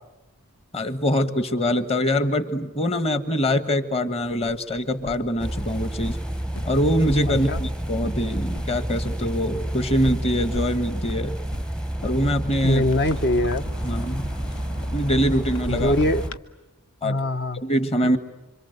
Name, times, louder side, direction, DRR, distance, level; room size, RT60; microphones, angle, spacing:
voice 1, 0.7-6.2 6.6-11.3 12.0-12.8 13.8-14.3 14.9-15.9 17.0-17.2 17.6-18.2, equal, 30° left, 11 dB, 1.5 m, -24 dB
sound 1, 4.2-16.4, left 1 dB, 70° left, 1.3 m, -40 dB
sound 2, 5.4-16.3, right 1 dB, 5° left, 0.8 m, -29 dB
voice 2, 7.3-7.6 12.6-13.6 15.7-16.3 17.0-17.6, left 1 dB, 50° left, 9 dB, 1.2 m, -23 dB
27.0 x 26.0 x 8.1 m, 1.0 s
head